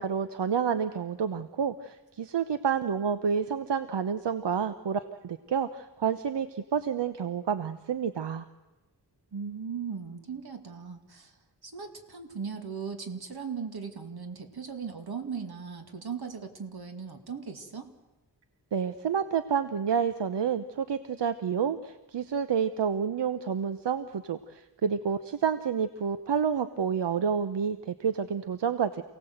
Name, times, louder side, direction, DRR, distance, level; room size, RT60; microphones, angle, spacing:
voice 1, 0.0-8.4 18.7-29.0, right 7 dB, 80° right, 11 dB, 0.9 m, -29 dB
voice 2, 9.3-11.3 11.6-17.9, right 6 dB, 60° right, 6 dB, 2.5 m, -38 dB
28.0 x 17.5 x 8.0 m, 1.1 s
wide cardioid pair, 115°, 42 cm